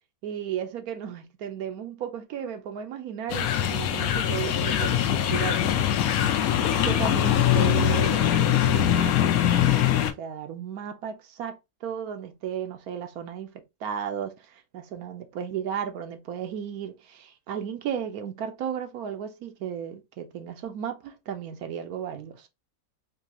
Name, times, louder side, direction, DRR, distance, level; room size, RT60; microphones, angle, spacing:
voice 1, 0.2-5.8 6.8-9.3 10.2-22.5, right 8 dB, 80° right, 1.2 m, -35 dB
sound 1, 3.3-10.1, left 10 dB, 75° left, 1.0 m, -22 dB
4.2 x 2.7 x 2.8 m
omnidirectional pair, 1.6 m